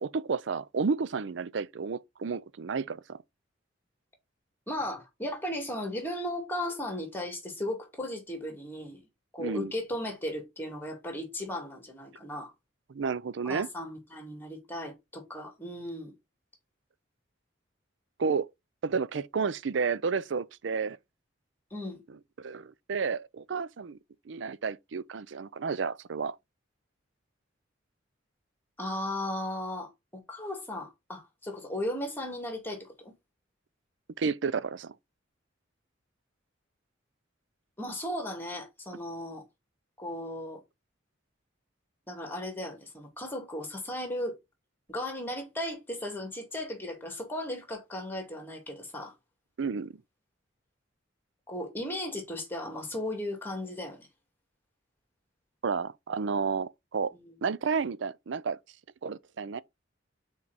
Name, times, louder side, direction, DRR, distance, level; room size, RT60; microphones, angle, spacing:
voice 1, 0.0-3.2 9.4-9.7 12.9-13.7 18.2-18.5 18.8-21.0 22.4-24.0 24.3-26.4 34.2-34.9 49.6-49.9 55.6-57.1 57.4-58.6 59.0-59.6, right 5 dB, 70° right, 0.5 m, -31 dB
voice 2, 4.7-9.0 9.3-12.5 13.4-16.1 21.7-22.0 28.8-33.1 37.8-39.4 40.0-40.6 42.1-44.4 44.9-49.1 51.5-54.1 57.1-57.4, left 1 dB, 10° left, 2.3 m, -36 dB
6.0 x 4.6 x 4.0 m
head